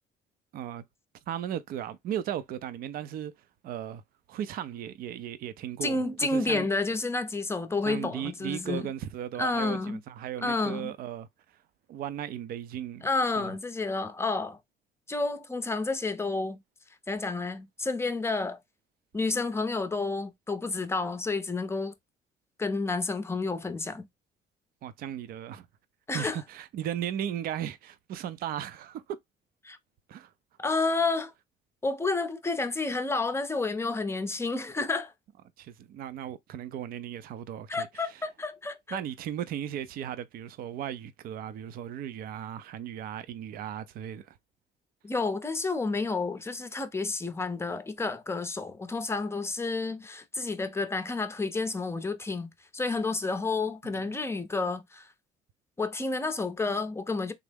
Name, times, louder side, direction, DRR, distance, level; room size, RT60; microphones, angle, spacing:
voice 1, 0.5-0.8 1.3-3.3 3.6-4.0 4.3-6.7 7.9-11.3 11.9-13.1 13.4-13.5 24.8-25.7 26.1-29.2 30.1-30.3 35.6-38.2 38.9-44.4 53.8-54.2, right 10 dB, 60° right, 0.4 m, -36 dB
voice 2, 5.8-8.8 9.4-10.0 10.4-10.9 13.0-14.6 15.1-16.6 17.1-18.6 19.1-21.9 22.6-24.0 26.1-26.4 29.6-29.8 30.6-31.3 31.8-35.1 37.7-39.0 45.0-55.1 55.8-57.3, left 3 dB, 15° left, 0.5 m, -30 dB
3.5 x 2.0 x 3.4 m
cardioid pair, 110°, 17 cm